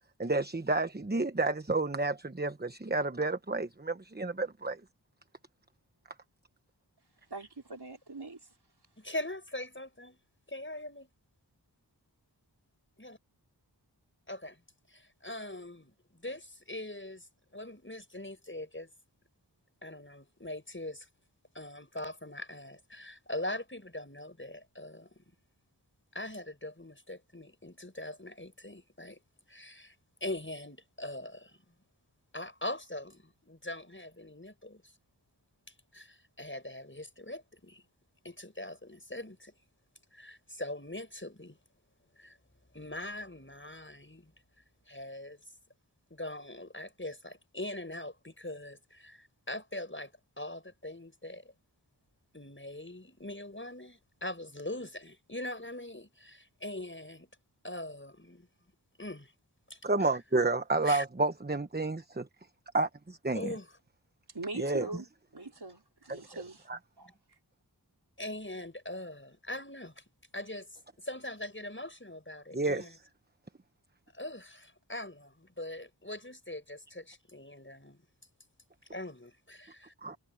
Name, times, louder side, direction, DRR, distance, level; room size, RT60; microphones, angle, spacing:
voice 1, 0.2-4.8 59.8-62.3 62.7-63.5 64.6-64.9 66.7-66.8 72.5-72.9 80.0-80.2, right 2 dB, 25° right, 1.1 m, -30 dB
voice 2, 7.3-8.5 64.3-65.1 65.3-66.7 67.0-67.4, right 2 dB, 65° right, 4.5 m, -42 dB
voice 3, 9.0-10.2 10.5-11.1 13.0-13.1 14.3-14.6 14.9-17.3 17.5-18.9 19.8-21.1 21.5-25.2 26.1-29.2 29.5-29.9 30.2-31.6 32.3-34.9 35.9-37.8 38.2-39.5 40.1-41.6 42.2-42.4 42.7-44.3 44.9-45.4 46.1-51.5 52.3-57.3 57.6-58.5 59.0-59.3 59.7-59.8 60.8-61.0 63.3-63.7 68.2-70.0 70.3-73.0 74.1-78.0 78.9-79.9, left 1 dB, 30° left, 6.8 m, -42 dB
wide cardioid pair, 40°, 41 cm